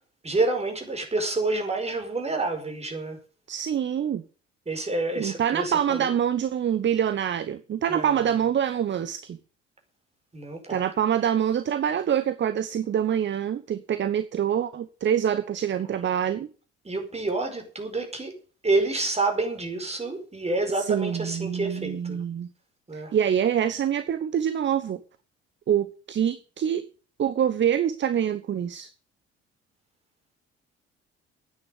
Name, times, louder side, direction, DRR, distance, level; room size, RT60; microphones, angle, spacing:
voice 1, 0.2-3.2 4.7-6.1 7.9-8.3 10.3-10.8 16.8-18.3 18.6-22.2 22.9-23.1, right 2 dB, 20° right, 5.0 m, -28 dB
voice 2, 3.5-4.2 5.2-9.4 10.7-16.5 20.8-22.5 22.9-25.0 25.7-26.8 27.2-28.9, right 9 dB, 35° right, 1.0 m, -25 dB
10.5 x 9.5 x 9.2 m
figure-of-eight pair, 50°, 34 cm